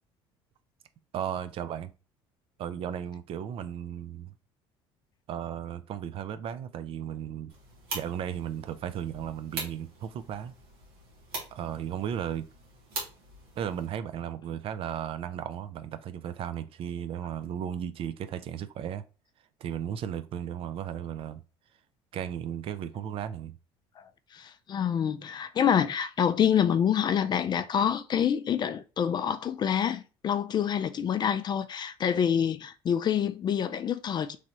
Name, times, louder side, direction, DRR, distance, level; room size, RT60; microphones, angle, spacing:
voice 1, 1.1-1.9 2.6-4.3 5.3-7.5 7.9-10.5 11.5-12.5 13.6-19.0 19.6-21.4 22.1-23.6, right 9 dB, 50° right, 0.4 m, -35 dB
sound 1, 7.5-13.9, right 3 dB, 85° right, 1.2 m, -42 dB
voice 2, 24.3-34.4, left 8 dB, 35° left, 0.4 m, -27 dB
3.1 x 2.6 x 2.8 m
hypercardioid pair, 75°, 12 cm